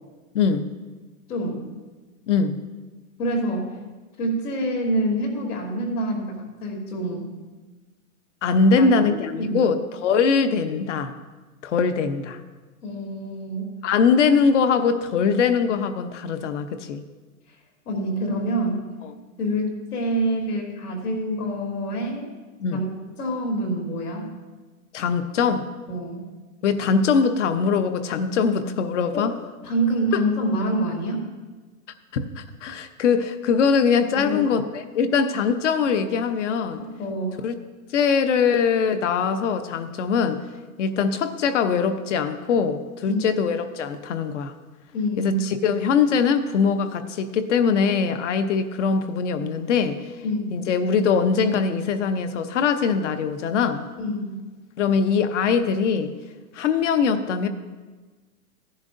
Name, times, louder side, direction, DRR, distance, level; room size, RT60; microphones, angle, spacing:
voice 1, 0.3-0.7 2.3-2.6 8.4-11.1 11.6-12.4 13.8-17.0 22.6-22.8 24.9-25.6 26.6-29.3 32.1-36.8 37.4-37.5 37.9-40.4 40.8-44.5 45.2-50.1 50.5-53.9 54.8-56.1 56.5-57.5, left 5 dB, 55° left, 10 dB, 0.8 m, -22 dB
voice 2, 1.3-1.6 3.2-3.8 4.2-6.3 6.6-7.2 8.8-9.7 12.8-13.7 17.8-18.9 19.4-22.3 22.7-22.9 23.2-24.3 25.9-26.2 29.1-29.3 29.6-31.2 34.1-34.5 36.7-37.4 43.1-43.2 44.9-45.4 50.2-50.6 54.0-54.3, right 1 dB, 80° left, 0 dB, 3.2 m, -26 dB
15.0 x 10.5 x 2.6 m, 1.3 s
hypercardioid pair, 160°, 44 cm